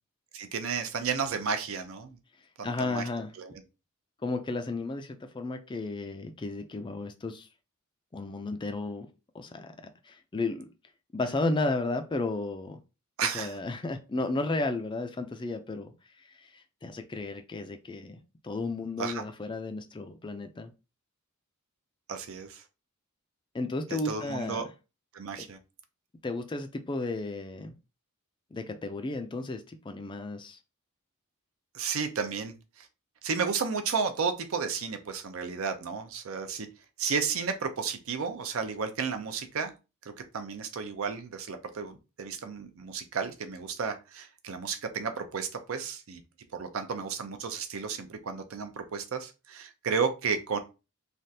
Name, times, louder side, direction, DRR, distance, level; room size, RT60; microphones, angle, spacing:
voice 1, 0.3-2.2 2.6-3.0 3.4-3.5 13.2-13.5 19.0-19.2 22.1-22.6 23.9-24.7 25.1-25.6 31.7-32.9 33.2-36.7 37.0-39.7 40.0-46.2 46.5-50.6, right 5 dB, 70° right, 8 dB, 0.5 m, -33 dB
voice 2, 2.6-3.3 4.2-7.5 8.1-9.1 9.3-9.7 10.0-10.7 11.1-12.8 13.2-15.9 16.2-18.2 18.4-20.7 23.5-24.6 25.4-25.5 26.2-27.7 28.5-30.6, left 2 dB, 20° left, 7 dB, 0.3 m, -33 dB
3.3 x 2.4 x 2.7 m, 0.29 s
head